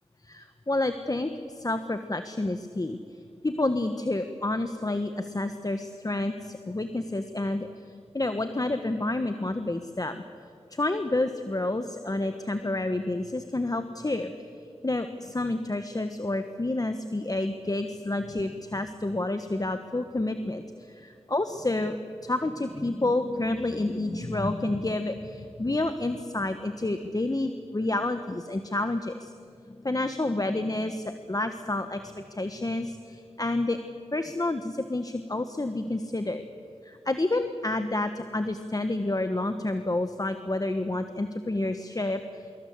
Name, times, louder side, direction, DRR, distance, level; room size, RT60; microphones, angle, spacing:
voice 1, 0.2-3.0 3.4-7.7 8.1-10.2 10.7-14.3 14.8-22.0 22.2-29.3 29.7-33.8 34.1-36.5 36.8-42.5, left 2 dB, 35° left, 8 dB, 1.3 m, -29 dB
25.5 x 23.0 x 8.1 m, 2.5 s
wide cardioid pair, 50°, 11 cm